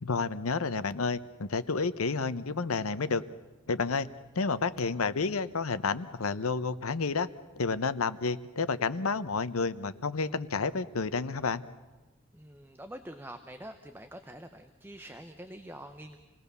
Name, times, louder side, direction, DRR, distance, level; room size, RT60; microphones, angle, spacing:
voice 1, 0.0-3.2 3.7-4.1 4.3-7.3 7.6-11.6, left 4 dB, 90° left, 13 dB, 0.8 m, -30 dB
voice 2, 12.3-16.2, right 1 dB, 10° right, 7 dB, 0.8 m, -46 dB
27.0 x 18.5 x 6.9 m, 1.2 s
head